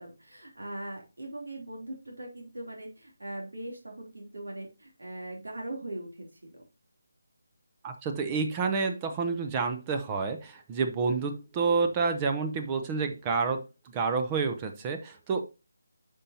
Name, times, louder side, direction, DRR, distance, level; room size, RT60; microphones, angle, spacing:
voice 1, 0.0-6.6, right 1 dB, 75° right, 0 dB, 3.2 m, -40 dB
voice 2, 7.8-13.6 13.9-15.4, right 4 dB, 20° right, 6 dB, 0.8 m, -29 dB
9.8 x 5.5 x 2.9 m, 0.27 s
figure-of-eight pair, 155°, 0 cm